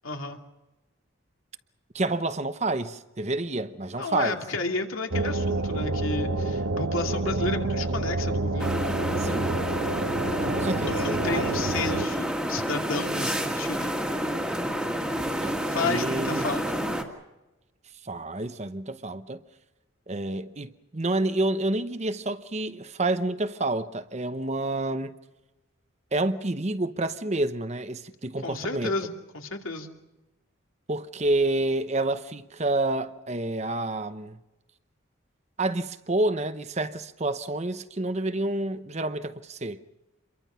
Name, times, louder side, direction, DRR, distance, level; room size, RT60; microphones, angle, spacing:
voice 1, 0.0-0.4 4.0-8.8 10.6-14.0 15.6-16.9 28.4-29.9, left 3 dB, 80° left, 2.6 m, -32 dB
voice 2, 1.9-4.4 9.2-9.5 10.4-11.6 15.4-16.5 18.0-19.4 20.1-25.1 26.1-28.9 30.9-34.4 35.6-39.8, right 2 dB, 30° right, 0.8 m, -29 dB
sound 1, 5.1-12.1, right 2 dB, 85° right, 1.2 m, -28 dB
sound 2, 8.6-17.0, equal, 5° right, 1.9 m, -29 dB
28.0 x 23.0 x 5.7 m
head